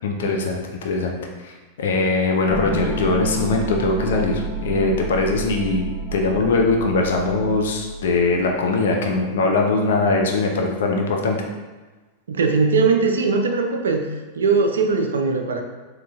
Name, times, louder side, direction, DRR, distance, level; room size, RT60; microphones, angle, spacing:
voice 1, 0.0-1.2 1.4-11.4, left 3 dB, 60° left, 1 dB, 0.5 m, -21 dB
sound 1, 2.5-8.6, right 2 dB, 15° left, 0.6 m, -30 dB
voice 2, 12.3-14.1 14.4-15.6, right 4 dB, 65° right, 4 dB, 0.4 m, -20 dB
3.8 x 3.1 x 2.3 m, 1.3 s
figure-of-eight pair, 90°, 0 cm